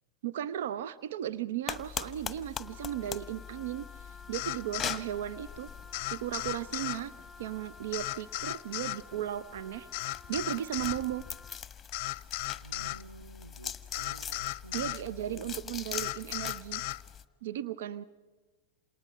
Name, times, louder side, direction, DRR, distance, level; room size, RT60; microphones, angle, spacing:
voice 1, 0.2-5.7 6.0-7.1 7.4-9.9 10.3-11.2 14.7-16.8 17.4-18.0, right 12 dB, 55° right, 0.7 m, -36 dB
sound 1, 1.7-17.2, left 7 dB, 15° left, 1.3 m, -43 dB
Wind instrument woodwind instrument, 2.6-11.6, left 3 dB, 5° right, 0.8 m, -53 dB
sound 2, 4.3-5.0 5.9-7.0 7.9-9.0 9.9-11.0 11.9-13.0 13.9-15.0 15.9-17.0, left 17 dB, 45° left, 0.7 m, -35 dB
voice 2, 12.6-15.8, right 2 dB, 80° right, 0.9 m, -50 dB
28.0 x 28.0 x 5.8 m
figure-of-eight pair, 90°, 0 cm